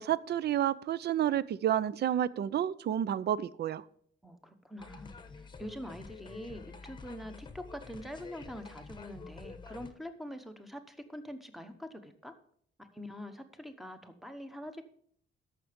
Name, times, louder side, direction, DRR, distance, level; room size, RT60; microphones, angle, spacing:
voice 1, 0.0-3.8, right 11 dB, 55° right, 0.5 m, -30 dB
voice 2, 4.2-12.3 12.8-14.8, equal, ahead, 0.9 m, -45 dB
sound 1, 4.8-9.9, left 4 dB, 20° left, 0.9 m, -48 dB
13.5 x 5.9 x 5.1 m
cardioid pair, 145°, 20 cm